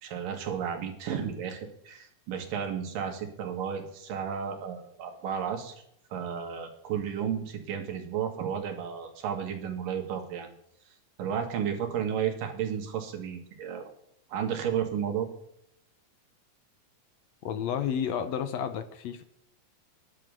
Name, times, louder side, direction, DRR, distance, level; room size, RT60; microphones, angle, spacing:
voice 1, 0.0-5.7 6.1-10.5 11.2-13.9 14.3-15.3, right 8 dB, 90° right, 5 dB, 3.5 m, -33 dB
voice 2, 17.4-19.2, left 8 dB, 70° left, 11 dB, 1.7 m, -31 dB
11.0 x 7.7 x 6.7 m, 0.74 s
omnidirectional pair, 3.7 m